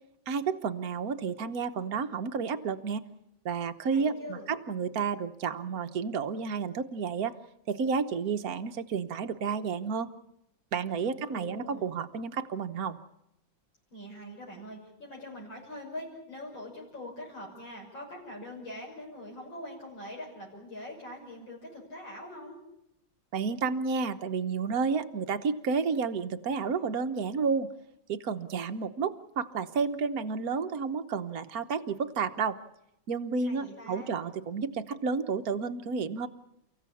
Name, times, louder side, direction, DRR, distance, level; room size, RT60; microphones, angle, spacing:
voice 1, 0.3-3.0 3.4-7.3 7.7-10.1 10.7-13.0 23.3-27.7 28.1-32.6 33.1-36.3, right 5 dB, 55° right, 8 dB, 1.4 m, -31 dB
voice 2, 3.9-4.5 11.0-11.9 13.9-22.6 33.4-34.2, left 1 dB, 75° left, -4 dB, 6.9 m, -43 dB
29.5 x 15.5 x 8.5 m, 0.85 s
omnidirectional pair, 2.1 m